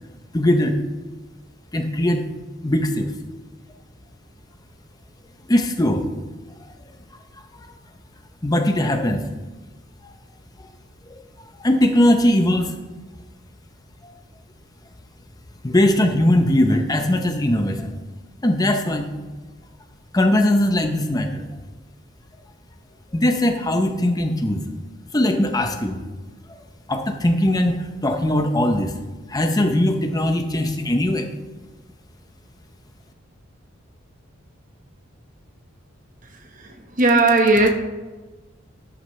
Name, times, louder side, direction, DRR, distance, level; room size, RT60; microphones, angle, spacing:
voice 1, 0.3-0.8 1.7-2.2 2.6-3.1 5.5-6.1 7.6-7.7 8.4-9.3 10.6-10.7 11.1-11.2 11.6-12.7 14.0-14.1 15.6-18.0 18.4-19.1 20.1-21.4 23.1-24.6 25.1-26.0 26.9-28.9 29.3-31.3, left 1 dB, 20° left, 0.7 m, -20 dB
voice 2, 36.3-37.7, right 2 dB, 40° right, 1.2 m, -18 dB
13.0 x 9.8 x 3.2 m
head